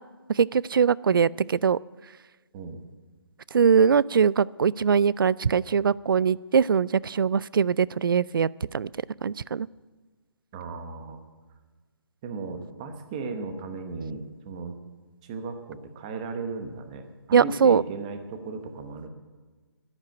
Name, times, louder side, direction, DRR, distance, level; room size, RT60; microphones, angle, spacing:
voice 1, 0.4-1.8 3.5-8.5 8.7-8.9 9.2-9.7 17.3-17.8, right 6 dB, 55° right, 23 dB, 0.4 m, -21 dB
voice 2, 10.5-11.2 12.2-14.8 15.2-19.1, right 4 dB, 15° right, 7 dB, 1.0 m, -36 dB
12.0 x 10.5 x 9.1 m, 1.3 s
hypercardioid pair, 170°, 13 cm